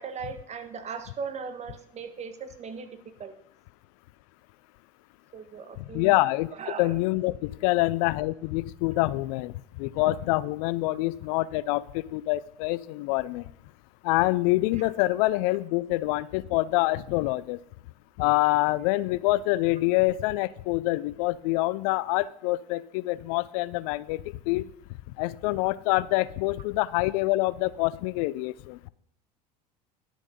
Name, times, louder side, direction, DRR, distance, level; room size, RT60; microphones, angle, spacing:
voice 1, 0.0-2.9 3.2-3.3 5.3-6.1 6.6-7.0, right 5 dB, 35° right, 8 dB, 1.4 m, -38 dB
voice 2, 5.8-6.5 6.8-13.5 14.0-17.6 18.2-24.7 25.2-28.9, left 19 dB, 60° left, 19 dB, 0.5 m, -26 dB
11.0 x 6.3 x 5.1 m, 0.70 s
hypercardioid pair, 80°, 21 cm